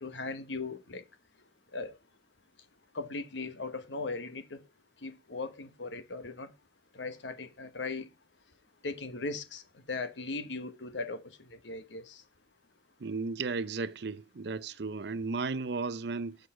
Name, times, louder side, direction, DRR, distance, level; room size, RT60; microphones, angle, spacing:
voice 1, 0.0-1.0 1.7-1.9 2.9-4.6 5.0-6.5 6.9-8.1 8.8-9.6 9.9-11.2 11.5-12.2, left 3 dB, 85° left, 1.2 m, -38 dB
voice 2, 13.0-16.4, right 4 dB, 65° right, 0.6 m, -34 dB
7.9 x 6.6 x 4.9 m
head